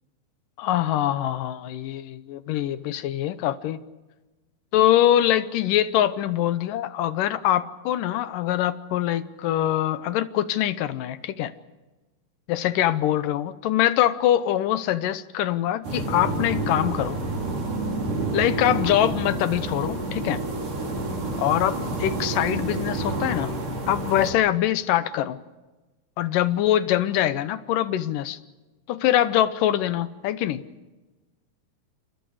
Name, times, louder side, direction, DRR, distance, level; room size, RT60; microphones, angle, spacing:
voice 1, 0.6-3.8 4.7-11.5 12.5-17.2 18.3-20.4 21.4-23.5 23.9-25.4 26.2-28.4 28.9-30.6, left 12 dB, 75° left, 14 dB, 2.4 m, -23 dB
sound 1, 15.8-24.3, right 2 dB, 60° right, 5.7 m, -29 dB
29.5 x 28.0 x 4.9 m, 1.1 s
omnidirectional pair, 4.1 m